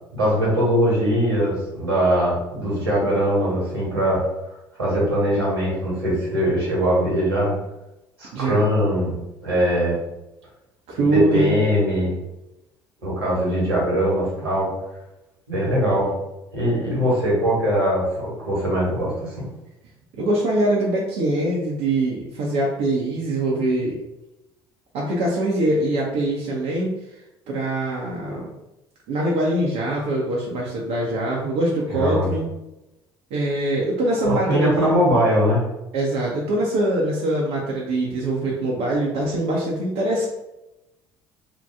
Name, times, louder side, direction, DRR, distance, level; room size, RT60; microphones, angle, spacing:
voice 1, 0.1-4.2 4.8-7.5 8.2-10.0 11.1-12.1 13.0-14.7 15.5-16.1 16.5-19.5 31.9-32.3 34.3-35.6, equal, 85° right, -6 dB, 1.3 m, -21 dB
voice 2, 8.3-8.8 10.9-11.5 20.2-23.9 24.9-27.0 27.5-28.5 29.1-32.5 33.3-34.9 35.9-40.3, right 1 dB, 60° right, -3 dB, 0.7 m, -23 dB
2.8 x 2.2 x 3.4 m, 0.94 s
figure-of-eight pair, 55°, 12 cm